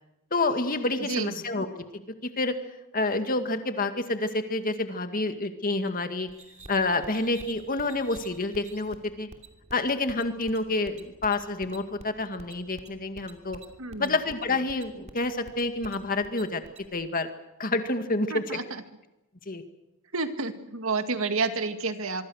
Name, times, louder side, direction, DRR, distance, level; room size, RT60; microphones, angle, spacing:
voice 1, 0.3-2.0 2.4-2.6 2.9-6.3 6.7-9.3 9.7-13.6 14.0-16.6 16.9-17.3 17.6-18.6 19.5-19.6, left 2 dB, 40° left, 7 dB, 2.0 m, -28 dB
voice 2, 1.0-1.3 13.8-14.1 18.3-18.8 20.1-22.3, right 4 dB, 70° right, 8 dB, 2.0 m, -30 dB
sound 1, 6.3-16.9, right 2 dB, 30° right, 2.9 m, -49 dB
24.5 x 24.5 x 6.5 m, 0.93 s
head